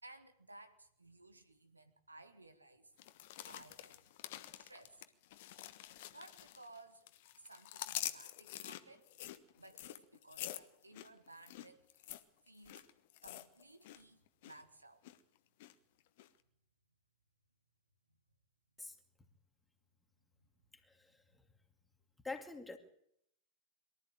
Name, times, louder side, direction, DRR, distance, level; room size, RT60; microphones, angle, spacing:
voice 1, 0.0-2.9 3.4-4.1 4.6-5.0 5.8-9.1 9.5-12.1 12.5-12.8 13.2-15.0 20.4-20.5, right 2 dB, 85° right, 7 dB, 1.9 m, -58 dB
sound 1, 3.0-6.8 7.1-14.0 14.3-14.6 15.0-15.7 16.2-16.3, left 14 dB, 50° left, 1.3 m, -47 dB
voice 2, 20.7-21.5 22.2-22.8, left 3 dB, 10° left, 5 dB, 2.5 m, -47 dB
23.0 x 13.5 x 9.0 m, 0.73 s
figure-of-eight pair, 90°, 0 cm